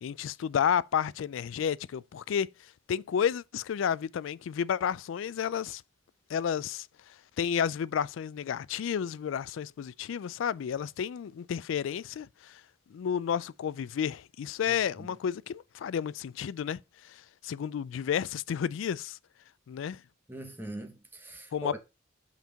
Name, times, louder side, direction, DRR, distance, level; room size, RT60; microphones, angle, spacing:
voice 1, 0.0-2.5 2.9-5.8 6.3-6.9 7.4-12.6 12.9-16.8 17.4-19.2 19.7-20.0 21.5-21.8, left 8 dB, 75° left, 0.3 m, -31 dB
voice 2, 14.7-15.2 20.3-21.8, right 1 dB, 10° right, 1.1 m, -42 dB
5.8 x 4.5 x 5.1 m
head